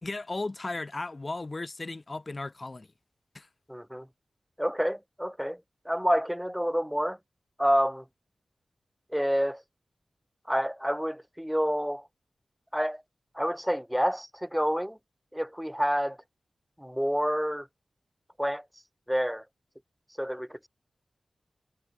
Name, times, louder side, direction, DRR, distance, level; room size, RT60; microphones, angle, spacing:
voice 1, 0.0-2.9 3.3-3.5, left 2 dB, 40° left, 5.8 m, -35 dB
voice 2, 3.7-4.1 4.6-5.6 5.9-7.2 7.6-8.0 9.1-9.6 10.5-12.0 12.7-13.0 13.4-15.0 15.3-16.2 16.8-17.7 18.4-18.6 19.1-19.4 20.2-20.7, equal, 5° right, 4.1 m, -28 dB
cardioid pair, 50°, 0 cm